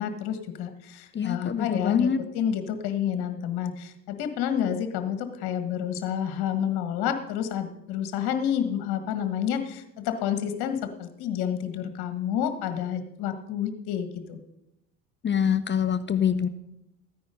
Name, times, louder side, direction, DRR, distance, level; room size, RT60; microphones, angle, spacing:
voice 1, 0.0-2.1 2.3-14.4, left 9 dB, 55° left, 9 dB, 1.6 m, -29 dB
voice 2, 1.1-2.2 15.2-16.5, left 7 dB, 25° left, 12 dB, 0.8 m, -25 dB
14.0 x 9.5 x 5.3 m, 0.87 s
hypercardioid pair, 65°, 45 cm